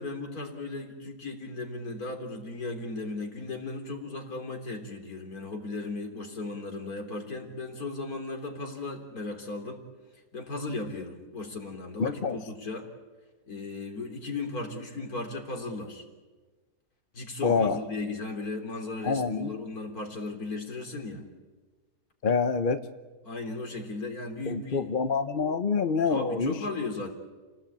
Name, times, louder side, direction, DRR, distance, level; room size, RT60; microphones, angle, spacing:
voice 1, 0.0-9.8 10.3-12.9 13.5-16.0 17.1-21.3 23.2-24.9 26.1-27.1, left 3 dB, 65° left, 3 dB, 3.9 m, -36 dB
voice 2, 12.0-12.4 17.4-17.8 19.0-19.5 22.2-22.8 24.5-26.5, left 5 dB, 40° left, 9 dB, 0.9 m, -26 dB
29.5 x 18.5 x 8.7 m, 1.3 s
omnidirectional pair, 1.7 m